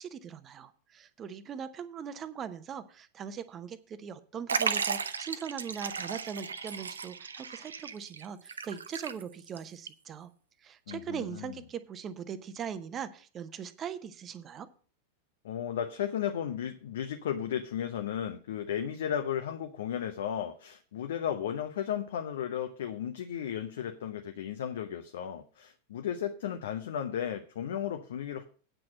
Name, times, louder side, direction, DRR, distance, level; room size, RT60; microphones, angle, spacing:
voice 1, 0.0-10.3 10.6-14.7, right 7 dB, 25° right, 12 dB, 0.9 m, -40 dB
Liquid, 4.5-9.6 9.9-10.0 10.9-11.0, right 5 dB, 70° right, 0.7 m, -35 dB
voice 2, 10.9-11.5 15.4-28.4, left 9 dB, 60° left, 7 dB, 0.8 m, -34 dB
9.1 x 6.0 x 7.5 m, 0.41 s
figure-of-eight pair, 90°, 0 cm